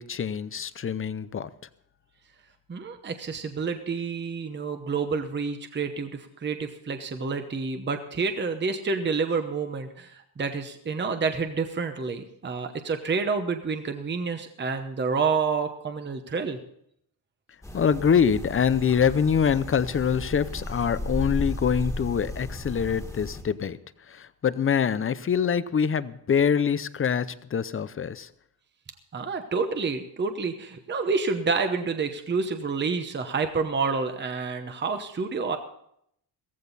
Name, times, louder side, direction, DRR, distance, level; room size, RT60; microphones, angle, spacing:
voice 1, 0.0-1.5 17.7-23.8 24.1-27.3 27.5-28.3, left 7 dB, 30° left, 15 dB, 0.6 m, -24 dB
voice 2, 2.7-16.6 29.1-35.6, right 4 dB, 25° right, 7 dB, 1.0 m, -29 dB
sound 1, 17.6-23.4, left 1 dB, 5° left, 1.8 m, -35 dB
16.0 x 15.0 x 4.1 m, 0.71 s
cardioid pair, 140°, 45 cm